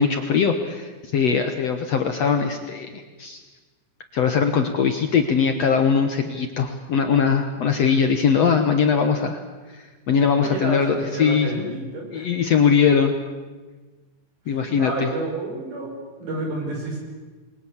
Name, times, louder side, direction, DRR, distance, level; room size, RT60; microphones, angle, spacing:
voice 1, 0.0-3.4 4.1-9.4 9.7-11.7 12.1-13.1 14.5-15.1, left 6 dB, 60° left, 6 dB, 2.0 m, -21 dB
voice 2, 10.4-12.3 14.5-17.0, right 2 dB, 60° right, 0 dB, 7.3 m, -30 dB
28.5 x 22.0 x 7.3 m, 1.3 s
omnidirectional pair, 4.1 m